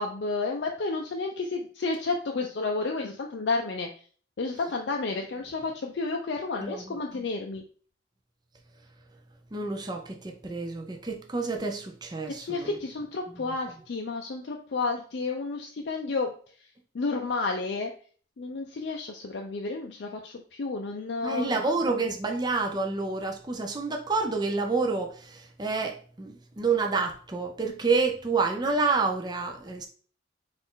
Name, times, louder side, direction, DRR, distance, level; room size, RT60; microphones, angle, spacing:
voice 1, 0.0-3.9 4.4-7.6 12.3-16.3 16.9-17.9 18.4-21.6, left 3 dB, 60° left, 0.4 m, -31 dB
voice 2, 6.6-7.0 9.5-12.7 21.2-29.9, right 4 dB, 20° right, 0.5 m, -28 dB
4.0 x 2.5 x 3.8 m
head